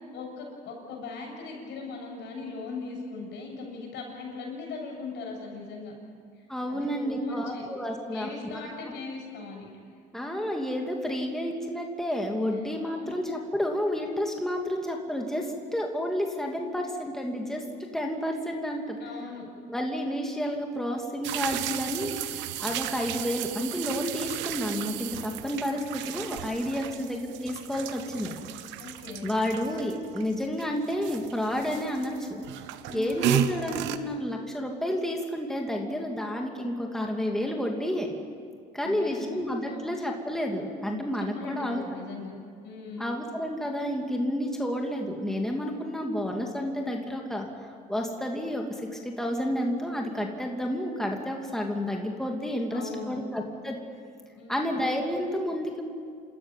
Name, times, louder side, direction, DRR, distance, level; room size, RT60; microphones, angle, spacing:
voice 1, 0.1-5.9 6.7-7.6 8.1-9.7 12.8-13.1 19.0-19.4 26.8-27.1 28.8-29.3 32.9-33.3 38.8-39.9 41.4-42.4 42.6-43.1 52.7-53.2 54.4-54.7, left 4 dB, 75° left, 0 dB, 7.9 m, -39 dB
voice 2, 6.5-8.9 10.1-17.6 17.9-19.0 19.7-28.3 29.2-32.4 32.9-38.1 38.7-41.8 43.0-53.8 54.5-55.8, equal, ahead, 1 dB, 2.7 m, -30 dB
sound 1, 21.2-34.0, right 11 dB, 85° right, 1.0 m, -34 dB
28.5 x 13.5 x 9.2 m, 2.3 s
cardioid pair, 90°, 19 cm